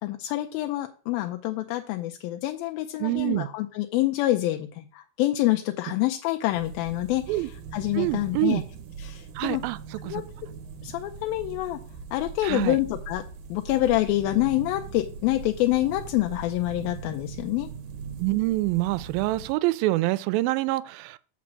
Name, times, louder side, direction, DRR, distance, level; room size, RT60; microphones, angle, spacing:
voice 1, 0.0-8.6 9.0-9.6 10.0-10.2 10.8-11.8 12.1-13.2 13.5-17.7, left 16 dB, 85° left, 2.4 m, -27 dB
voice 2, 3.0-3.5 7.3-7.5 8.0-8.6 9.4-9.8 10.1-10.2 12.4-12.8 18.2-21.2, right 18 dB, 85° right, 2.3 m, -26 dB
sound 1, 6.5-19.5, right 6 dB, 70° right, 2.2 m, -41 dB
6.2 x 5.9 x 7.3 m
omnidirectional pair, 4.1 m